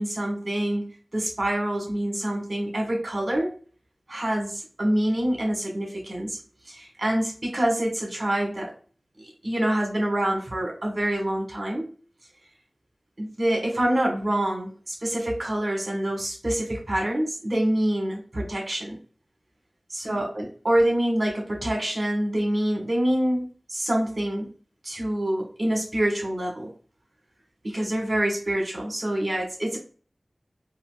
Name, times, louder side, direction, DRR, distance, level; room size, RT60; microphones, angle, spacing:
voice 1, 0.0-3.5 4.1-6.4 6.7-8.7 9.2-11.9 13.2-19.0 19.9-24.5 24.8-26.7 27.6-29.8, right 1 dB, 45° right, 0 dB, 1.3 m, -26 dB
3.9 x 2.6 x 2.3 m, 0.40 s
wide cardioid pair, 70°, 0 cm